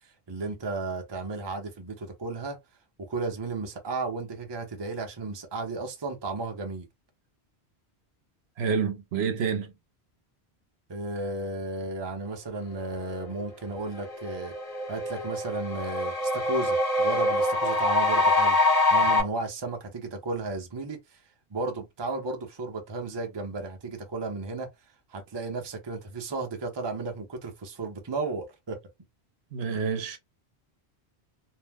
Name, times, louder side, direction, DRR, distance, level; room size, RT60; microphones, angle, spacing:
voice 1, 0.0-2.6 3.1-6.9 10.9-14.5 14.9-18.6 18.9-21.2 21.5-24.7 25.1-28.8, right 3 dB, 30° right, 0.6 m, -34 dB
voice 2, 8.6-9.7 29.5-30.2, right 6 dB, 75° right, 0.9 m, -28 dB
sound 1, 13.4-13.5 13.9-19.2, left 2 dB, 40° left, 0.8 m, -25 dB
2.7 x 2.0 x 3.4 m
omnidirectional pair, 1.1 m